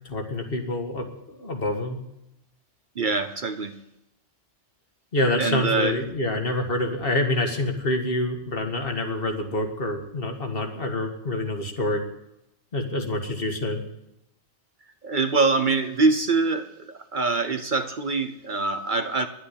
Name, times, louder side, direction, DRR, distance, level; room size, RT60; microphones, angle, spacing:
voice 1, 0.1-1.1 1.4-2.0 5.1-12.0 12.7-13.8, left 1 dB, 50° left, 4 dB, 1.9 m, -27 dB
voice 2, 3.0-3.8 5.4-6.0 15.0-19.3, right 3 dB, 45° right, 9 dB, 0.9 m, -24 dB
11.0 x 9.8 x 8.4 m, 0.84 s
omnidirectional pair, 1.2 m